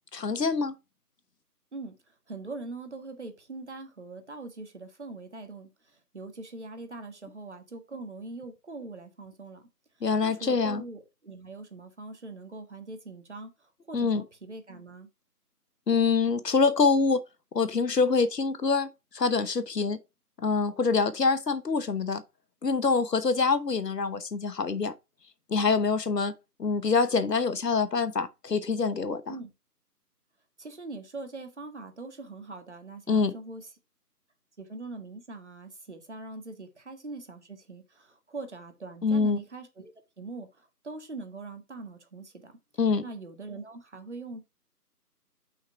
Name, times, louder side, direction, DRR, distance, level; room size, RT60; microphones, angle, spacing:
voice 1, 0.1-0.7 10.0-10.8 13.9-14.2 15.9-17.2 17.5-20.0 20.4-22.2 22.6-24.9 25.5-26.3 26.6-29.3 33.1-33.3 39.0-39.4 42.8-43.1, left 4 dB, 85° left, 1.1 m, -25 dB
voice 2, 1.7-9.7 10.2-15.1 29.3-29.5 30.6-33.7 34.6-42.5 43.0-44.4, right 3 dB, 45° right, 1.5 m, -42 dB
5.8 x 5.6 x 4.5 m
figure-of-eight pair, 170°, 48 cm